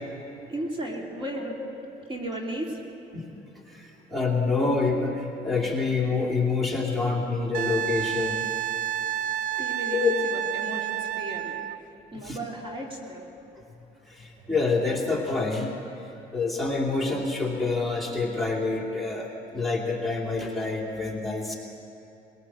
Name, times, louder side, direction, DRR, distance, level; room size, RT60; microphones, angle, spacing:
voice 1, 0.5-1.5 2.1-2.8 9.6-11.6 12.1-13.3, right 1 dB, 30° right, 0 dB, 2.9 m, -35 dB
voice 2, 3.7-8.5 9.9-10.1 12.2-12.4 14.1-15.7 16.3-21.6, left 3 dB, ahead, -2 dB, 2.7 m, -27 dB
Wind instrument woodwind instrument, 7.5-11.8 14.5-14.6, right 11 dB, 50° right, 0.5 m, -30 dB
20.5 x 17.5 x 7.6 m, 3.0 s
cardioid pair, 110°, 17 cm